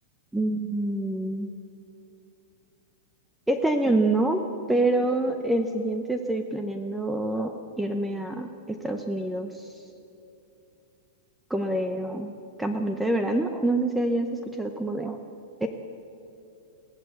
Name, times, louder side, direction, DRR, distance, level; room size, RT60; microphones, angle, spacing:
voice 1, 0.3-1.5 3.5-4.4 4.7-9.7 11.5-12.3 12.6-15.2 15.6-15.7, right 2 dB, 5° right, 6 dB, 0.6 m, -26 dB
22.0 x 16.5 x 8.0 m, 2.8 s
supercardioid pair, 175°, 0 cm